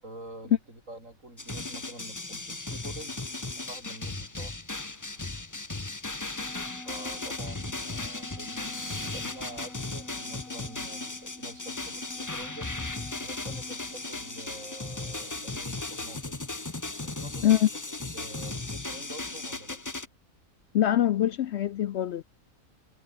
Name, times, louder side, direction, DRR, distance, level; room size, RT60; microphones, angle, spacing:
voice 1, 0.0-3.2 3.6-4.6 6.8-12.7 13.2-16.4 17.0-17.6 17.9-19.8, right 1 dB, 65° right, 8.5 m, -46 dB
sound 1, 1.4-20.1, left 2 dB, 15° left, 0.9 m, -36 dB
Wind instrument woodwind instrument, 6.3-14.5, left 2 dB, 85° left, 5.1 m, -48 dB
voice 2, 20.7-22.2, left 11 dB, 65° left, 0.7 m, -23 dB
omnidirectional pair, 1.4 m